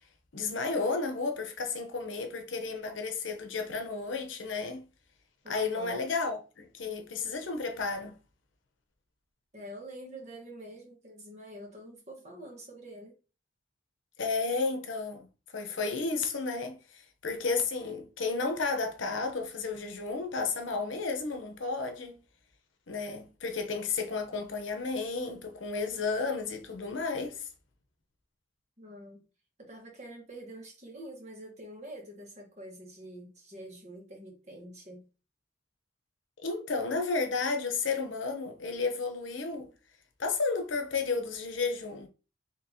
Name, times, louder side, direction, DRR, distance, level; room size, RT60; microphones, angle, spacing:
voice 1, 0.3-4.9 5.5-8.2 14.2-15.3 15.5-22.2 22.9-27.5 36.4-39.7 40.2-42.1, left 4 dB, 90° left, 0.8 m, -32 dB
voice 2, 5.4-6.0 9.5-13.1 28.8-29.2 29.6-35.0, right 1 dB, 35° right, 1.3 m, -46 dB
4.4 x 2.9 x 2.8 m
head